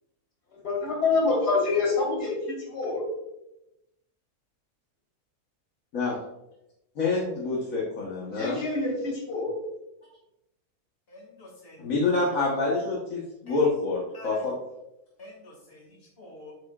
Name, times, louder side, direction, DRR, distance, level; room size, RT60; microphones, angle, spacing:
voice 1, 0.5-3.0 8.3-9.5, left 3 dB, 80° left, 0 dB, 3.3 m, -26 dB
voice 2, 6.9-8.6 11.8-14.5, left 3 dB, 55° left, -5 dB, 1.7 m, -27 dB
voice 3, 11.1-11.8 13.5-13.6 14.1-14.4 15.2-16.5, left 2 dB, 35° left, -2 dB, 2.5 m, -48 dB
9.0 x 6.8 x 2.5 m, 0.88 s
omnidirectional pair, 1.7 m